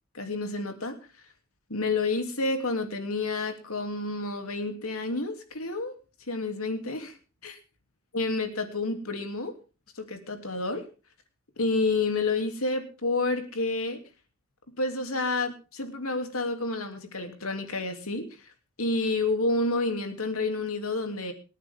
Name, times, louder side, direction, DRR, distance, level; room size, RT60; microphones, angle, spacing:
voice 1, 0.1-1.0 1.7-5.9 6.3-7.1 7.4-7.6 8.1-9.5 9.9-10.9 11.6-14.0 14.8-18.3 18.8-21.3, left 3 dB, 80° left, 6 dB, 3.0 m, -29 dB
26.5 x 9.6 x 3.7 m, 0.34 s
head